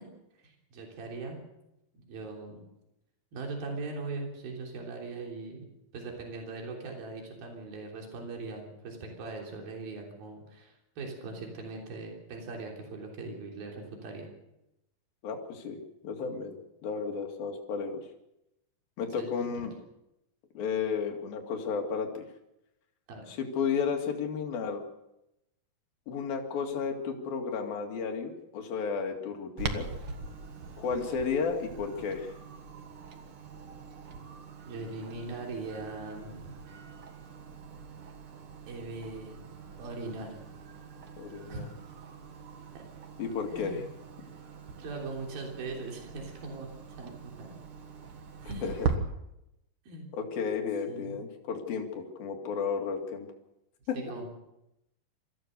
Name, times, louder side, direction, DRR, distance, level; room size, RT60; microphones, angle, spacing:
voice 1, 0.4-1.4 2.1-2.6 3.3-5.7 5.9-14.3 19.1-19.5 23.1-23.3 34.7-36.6 38.7-39.4 39.8-40.4 41.5-41.7 42.7-42.8 43.5-43.9 44.8-47.6 48.4-48.7 49.9-50.1 50.9-51.2 53.9-54.3, right 3 dB, 80° right, 0 dB, 5.2 m, -40 dB
voice 2, 15.2-18.0 19.0-19.7 20.6-22.3 23.3-24.8 26.1-29.9 30.8-32.3 41.2-41.7 43.2-43.8 48.6-48.9 50.1-53.3 53.9-54.2, left 5 dB, 75° left, 3 dB, 4.0 m, -33 dB
Clock, 29.6-49.0, right 6 dB, 50° right, 1.9 m, -42 dB
26.5 x 15.0 x 6.7 m, 0.88 s
omnidirectional pair, 4.2 m